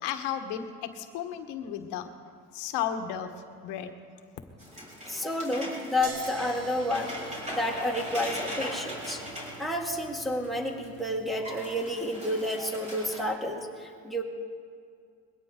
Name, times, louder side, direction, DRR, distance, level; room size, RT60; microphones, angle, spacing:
voice 1, 0.0-2.1 2.5-3.3 3.6-3.9, left 9 dB, 75° left, 7 dB, 1.5 m, -33 dB
sound 1, 4.6-10.5 10.8-10.9 11.2-13.2, equal, 15° right, 4.7 m, -40 dB
voice 2, 5.1-7.2 7.5-9.2 9.6-14.2, left 1 dB, ahead, -1 dB, 2.0 m, -30 dB
sound 2, 6.0-11.8, right 7 dB, 80° right, 1.6 m, -45 dB
21.5 x 17.0 x 3.8 m, 2.2 s
cardioid pair, 120°, 41 cm